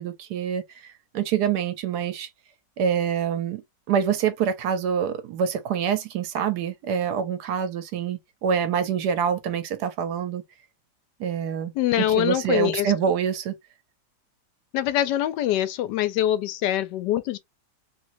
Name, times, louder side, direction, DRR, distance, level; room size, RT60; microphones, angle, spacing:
voice 1, 0.0-2.3 2.8-3.6 3.9-10.4 11.2-11.7 12.1-13.5, right 7 dB, 75° right, 1.2 m, -26 dB
voice 2, 11.7-12.9 14.7-17.4, left 12 dB, 90° left, 1.2 m, -24 dB
3.0 x 3.0 x 2.6 m
omnidirectional pair, 1.8 m